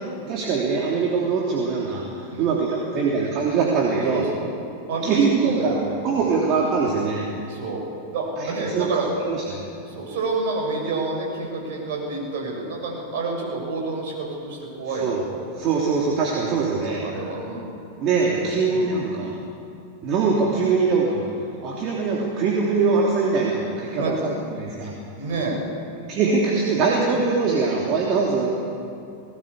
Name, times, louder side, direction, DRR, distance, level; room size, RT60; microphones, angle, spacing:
voice 1, 0.3-4.2 5.0-5.8 6.0-7.3 8.4-8.9 9.2-9.6 15.0-15.2 15.6-17.0 18.0-19.3 20.0-21.2 21.6-24.9 26.1-28.5, right 4 dB, 35° right, -3 dB, 3.1 m, -22 dB
voice 2, 3.9-4.4 4.9-6.4 7.5-7.8 8.1-9.1 9.9-15.4 16.3-17.7 18.2-18.9 23.9-24.1 25.2-25.6, right 3 dB, 55° right, -1 dB, 7.1 m, -29 dB
20.5 x 18.0 x 8.4 m, 2.6 s
figure-of-eight pair, 90°, 0 cm